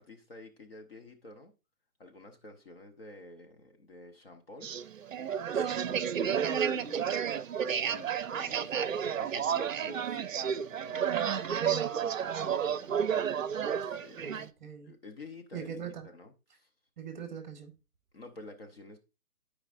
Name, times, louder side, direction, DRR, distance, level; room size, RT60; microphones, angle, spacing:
voice 1, 0.0-1.5 2.0-4.7 6.5-7.3 7.6-10.2 10.9-13.3 13.6-14.5 14.8-16.7 18.1-19.0, left 2 dB, 40° left, 0.9 m, -51 dB
sound 1, 4.6-14.5, right 8 dB, 60° right, 0.6 m, -31 dB
voice 2, 5.5-6.1 14.2-14.9 15.5-16.1 17.0-17.7, right 7 dB, 30° right, 1.3 m, -42 dB
13.5 x 4.9 x 2.5 m
hypercardioid pair, 165°, 46 cm